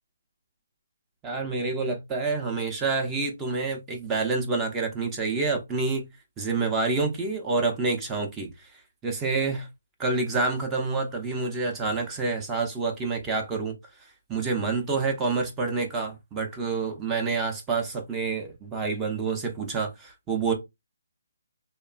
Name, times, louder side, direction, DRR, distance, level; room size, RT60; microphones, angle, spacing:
voice 1, 1.2-6.0 6.4-9.7 10.0-20.5, right 4 dB, 10° right, 0.5 m, -28 dB
2.9 x 2.2 x 2.4 m
hypercardioid pair, 170°, 0 cm